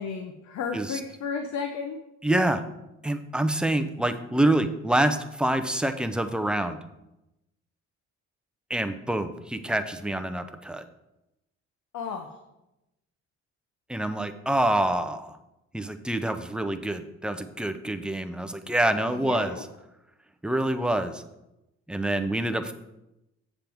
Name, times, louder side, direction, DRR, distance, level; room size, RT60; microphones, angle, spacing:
voice 1, 0.0-2.0 11.9-12.3 19.1-19.6, left 5 dB, 65° left, 6 dB, 0.8 m, -33 dB
voice 2, 2.2-2.6 3.0-6.8 8.7-10.8 13.9-15.4 15.7-19.6 20.4-21.2 21.9-22.7, right 1 dB, 5° right, 9 dB, 0.5 m, -26 dB
7.5 x 7.2 x 3.5 m, 0.92 s
cardioid pair, 90°, 30 cm